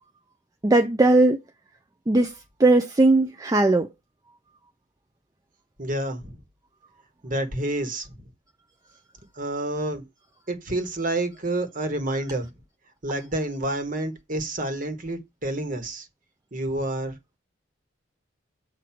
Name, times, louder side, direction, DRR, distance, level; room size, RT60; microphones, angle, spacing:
voice 1, 0.6-1.4 2.1-2.3 2.6-3.9, right 2 dB, 20° right, 0.4 m, -18 dB
voice 2, 5.8-6.4 7.2-8.2 9.3-10.0 10.5-12.5 13.0-16.1 16.5-17.2, right 1 dB, 45° right, 1.3 m, -29 dB
7.5 x 2.6 x 5.7 m
head